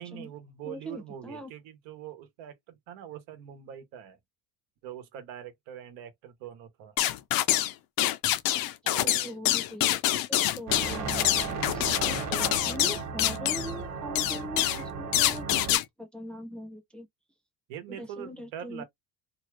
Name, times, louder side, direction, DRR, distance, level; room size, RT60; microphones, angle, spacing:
voice 1, 0.0-4.2 4.8-6.9 8.8-9.4 17.7-18.8, right 10 dB, 90° right, 1.1 m, -43 dB
voice 2, 0.6-1.5 8.9-10.0 10.3-11.8 12.3-17.1 17.9-18.8, equal, ahead, 0.6 m, -41 dB
sound 1, 7.0-7.7 8.0-13.7 14.1-14.8 15.1-15.8, left 14 dB, 55° left, 0.5 m, -26 dB
sound 2, 10.7-15.8, right 4 dB, 40° right, 1.1 m, -35 dB
2.7 x 2.3 x 3.1 m
cardioid pair, 145°, 44 cm